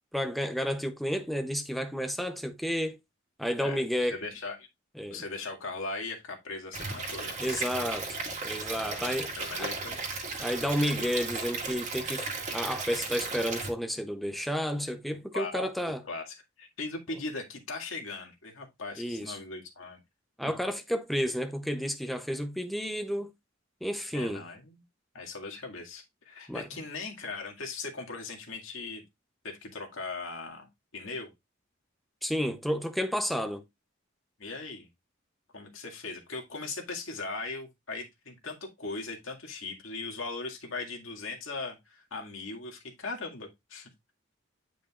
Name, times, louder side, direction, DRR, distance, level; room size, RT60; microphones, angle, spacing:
voice 1, 0.1-3.0 3.4-4.2 5.0-5.2 7.4-8.0 8.4-9.3 9.6-9.7 10.4-12.3 12.5-16.0 19.0-19.4 20.4-23.3 23.8-24.4 26.5-26.7 32.2-33.6, equal, ahead, 0.6 m, -31 dB
voice 2, 3.6-4.6 5.1-8.0 8.8-10.0 15.3-15.7 16.0-20.0 24.1-24.8 25.1-29.0 29.4-30.7 30.9-31.3 34.4-34.9 35.5-43.9, left 3 dB, 85° left, 2.0 m, -39 dB
Stream / Liquid, 6.7-13.7, right 3 dB, 35° right, 1.9 m, -35 dB
9.3 x 5.0 x 2.4 m
head